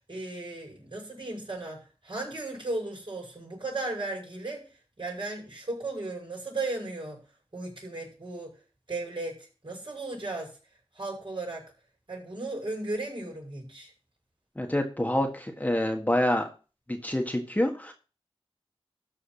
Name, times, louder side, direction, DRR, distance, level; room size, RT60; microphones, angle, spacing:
voice 1, 0.1-4.6 5.0-7.2 7.5-8.5 8.9-10.6 10.9-11.6 12.1-13.9, right 2 dB, 55° right, -2 dB, 6.4 m, -35 dB
voice 2, 14.6-16.5 17.0-17.9, left 1 dB, 15° left, 3 dB, 1.6 m, -27 dB
13.5 x 4.9 x 5.8 m, 0.34 s
wide cardioid pair, 60°, 10 cm